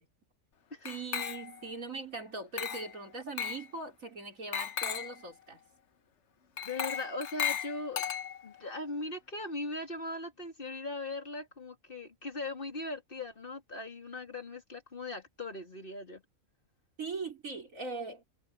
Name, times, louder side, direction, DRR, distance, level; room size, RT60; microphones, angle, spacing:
voice 1, 0.8-5.6 17.0-18.2, right 3 dB, 70° right, 4.5 m, -40 dB
Glass, 0.9-1.7 2.6-3.0 3.4-3.7 4.5-5.2 6.6-8.6, left 8 dB, 55° left, 1.2 m, -36 dB
voice 2, 6.6-8.0 8.4-16.2, left 2 dB, 40° left, 3.0 m, -39 dB
omnidirectional pair, 1.4 m